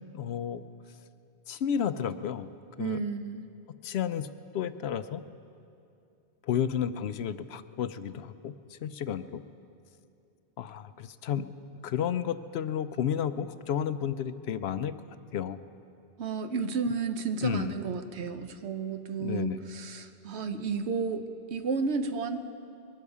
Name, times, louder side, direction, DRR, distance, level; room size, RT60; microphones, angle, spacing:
voice 1, 0.1-0.6 1.5-2.5 2.8-3.0 3.8-4.3 4.5-5.2 6.4-9.4 10.6-11.5 11.8-14.9 15.3-15.6 17.4-17.8 19.2-19.6, left 9 dB, 75° left, 12 dB, 0.8 m, -32 dB
voice 2, 2.8-3.4 16.2-22.4, right 5 dB, 80° right, 8 dB, 1.1 m, -32 dB
22.0 x 12.5 x 4.9 m, 2.6 s
omnidirectional pair, 1.1 m